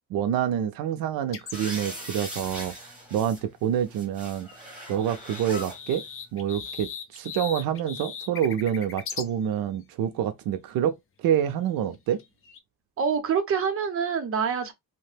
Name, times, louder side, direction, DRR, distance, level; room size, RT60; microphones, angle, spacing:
voice 1, 0.1-6.0 6.3-12.2, right 9 dB, 85° right, 0.5 m, -27 dB
sound 1, 1.3-1.7 3.9-4.0 4.3-9.3 11.9-12.6, left 7 dB, 40° left, 0.5 m, -38 dB
sound 2, 1.5-3.4 3.8-5.8 6.7-6.8, equal, 5° right, 1.4 m, -40 dB
voice 2, 13.0-14.7, right 6 dB, 40° right, 0.8 m, -26 dB
2.8 x 2.1 x 3.2 m
cardioid pair, 150°, 34 cm